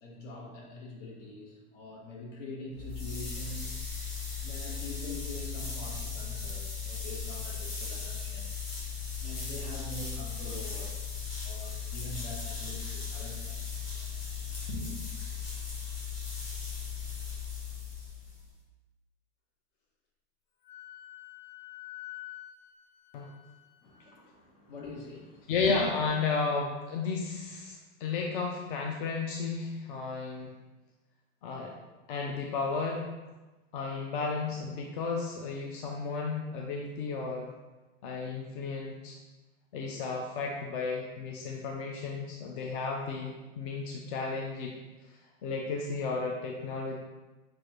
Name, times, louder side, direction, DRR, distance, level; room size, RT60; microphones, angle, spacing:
voice 1, 0.0-3.8 4.4-8.6 9.2-11.1 11.4-13.6 14.4-15.0 23.8-25.8, left 1 dB, 70° left, -2 dB, 1.4 m, -44 dB
sound 1, 2.7-18.5, left 6 dB, 25° left, 1.3 m, -37 dB
Wind instrument woodwind instrument, 20.6-24.1, left 15 dB, 90° left, 1.1 m, -47 dB
voice 2, 25.5-30.5 31.4-31.7 32.1-33.1 33.7-37.5 38.0-39.2 39.7-44.7 45.4-47.0, left 4 dB, 45° left, 0 dB, 0.5 m, -33 dB
6.3 x 2.5 x 3.0 m, 1.1 s
supercardioid pair, 170°, 38 cm